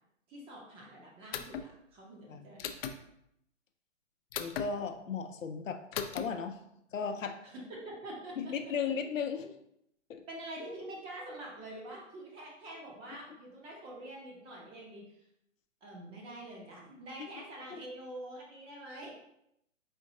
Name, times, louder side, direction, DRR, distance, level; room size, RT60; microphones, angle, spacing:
voice 1, 0.3-3.0 7.4-8.5 10.3-15.3 15.8-19.1, right 1 dB, 15° right, -2 dB, 0.6 m, -46 dB
sound 1, 1.3-1.7 2.6-3.0 4.3-4.7 5.9-6.2, left 8 dB, 50° left, 0.4 m, -37 dB
voice 2, 4.4-6.6 6.9-7.4 8.4-9.5 10.1-10.2 17.7-17.8, left 6 dB, 90° left, 7 dB, 0.6 m, -36 dB
4.3 x 3.6 x 2.6 m, 0.78 s
hypercardioid pair, 135°, 38 cm